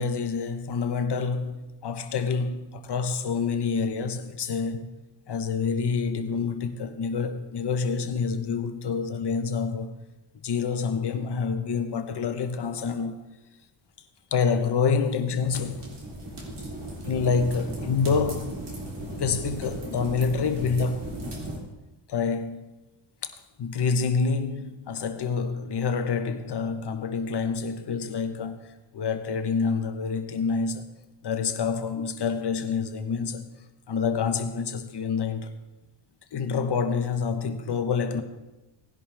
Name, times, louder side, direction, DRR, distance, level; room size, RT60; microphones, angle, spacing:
voice 1, 0.0-4.9 5.3-9.9 10.4-13.2 14.3-15.9 17.0-18.5 19.1-21.2 22.1-22.7 23.6-28.7 28.9-30.9 31.2-33.5 33.9-35.5 36.3-38.2, left 5 dB, 55° left, 1.3 m, -27 dB
sound 1, 15.4-21.6, right 1 dB, 55° right, 3.6 m, -36 dB
18.0 x 11.0 x 3.6 m
wide cardioid pair, 125°, 48 cm